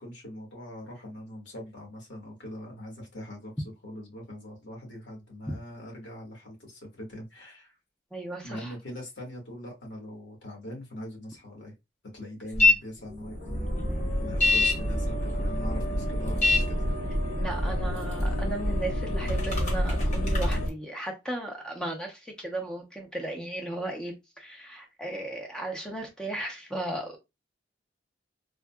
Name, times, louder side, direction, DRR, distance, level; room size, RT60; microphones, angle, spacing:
voice 1, 0.0-3.5 3.8-7.8 8.4-11.7 12.1-16.9, left 1 dB, 75° left, 1.6 m, -42 dB
voice 2, 8.1-8.7 17.4-27.2, right 1 dB, 5° left, 0.6 m, -36 dB
sound 1, 12.5-12.7 13.1-20.7, left 1 dB, 40° left, 1.1 m, -26 dB
3.7 x 2.2 x 2.3 m
head